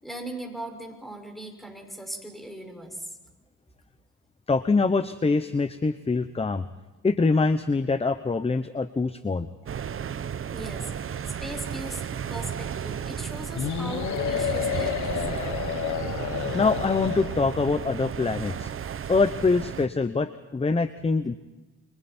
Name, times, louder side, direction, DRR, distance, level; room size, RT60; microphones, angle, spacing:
voice 1, 0.0-3.1 10.5-10.9 11.4-15.2, right 1 dB, ahead, 4 dB, 6.1 m, -38 dB
voice 2, 4.5-6.6 7.0-9.5 16.5-18.7 19.1-21.4, left 4 dB, 20° left, 11 dB, 1.0 m, -24 dB
sound 1, 9.7-19.9, right 8 dB, 45° right, 1.0 m, -33 dB
sound 2, 13.6-17.7, left 11 dB, 75° left, 1.2 m, -30 dB
30.0 x 24.5 x 4.5 m, 1.2 s
cardioid pair, 90°, 30 cm